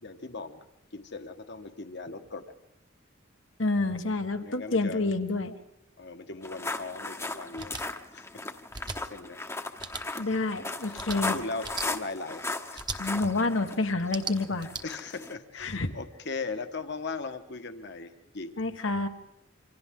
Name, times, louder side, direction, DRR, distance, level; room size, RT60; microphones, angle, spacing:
voice 1, 0.0-0.7 0.9-2.4 4.4-5.1 6.0-7.8 8.1-8.2 8.8-9.4 10.8-12.4 12.7-13.2 13.8-13.9 14.8-18.6, left 3 dB, 60° left, 7 dB, 1.5 m, -39 dB
voice 2, 3.6-5.5 10.2-11.4 13.0-14.7 15.6-15.9 18.6-19.1, left 2 dB, 80° left, 6 dB, 1.6 m, -28 dB
sound 1, 6.4-15.3, left 2 dB, 15° left, 1.1 m, -37 dB
sound 2, 7.6-7.8 8.7-9.0 9.8-10.0 10.9-11.2 11.6-11.9 12.7-13.0 14.0-14.8, right 4 dB, 20° right, 1.2 m, -37 dB
27.5 x 25.5 x 3.8 m, 0.82 s
head